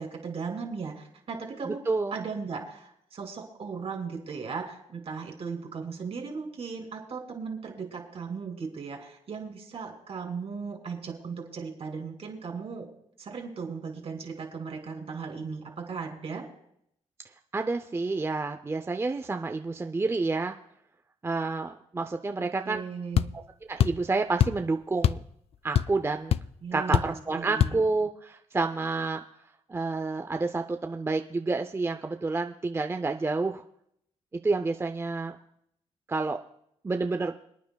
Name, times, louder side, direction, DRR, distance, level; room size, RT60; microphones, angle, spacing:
voice 1, 0.0-1.8 2.1-12.9 13.2-16.5 22.3-23.3 26.6-27.8, right 5 dB, 60° right, 2 dB, 2.7 m, -37 dB
voice 2, 1.6-2.2 17.5-20.5 21.2-22.8 23.7-25.2 25.6-26.3 26.7-29.2 29.7-33.6 34.3-35.4 36.1-36.4 36.8-37.3, right 3 dB, 20° right, 5 dB, 0.5 m, -29 dB
sound 1, 23.1-23.3 23.8-24.0 24.4-24.6 25.0-25.3 25.5-26.0 26.3-26.4 26.9-27.2 27.6-27.8, left 9 dB, 60° left, 0.4 m, -23 dB
26.5 x 9.3 x 2.3 m, 0.74 s
cardioid pair, 85°, 12 cm